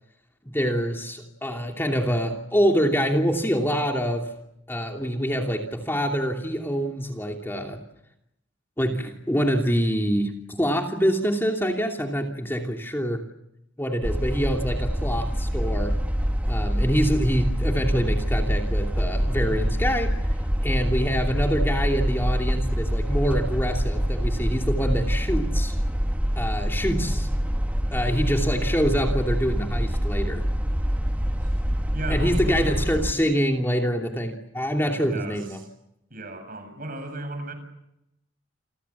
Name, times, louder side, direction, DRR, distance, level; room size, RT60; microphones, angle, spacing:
voice 1, 0.5-4.3 4.7-7.8 8.8-13.2 13.8-16.0 16.5-20.1 20.6-25.7 26.4-27.3 27.9-30.4 32.1-35.6, equal, 10° left, 2 dB, 2.8 m, -25 dB
sound 1, 14.0-33.1, equal, 10° right, 1.0 m, -25 dB
voice 2, 31.9-32.8 35.0-35.7 36.1-37.5, right 2 dB, 50° right, 8 dB, 7.5 m, -36 dB
29.5 x 22.5 x 7.3 m, 0.81 s
head